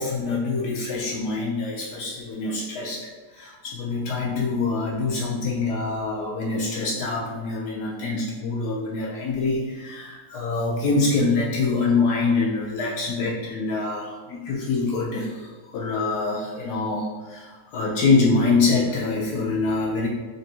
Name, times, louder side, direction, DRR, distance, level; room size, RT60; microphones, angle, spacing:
voice 1, 0.0-20.1, left 3 dB, 70° left, -3 dB, 0.9 m, -25 dB
4.0 x 3.4 x 2.7 m, 1.3 s
omnidirectional pair, 2.2 m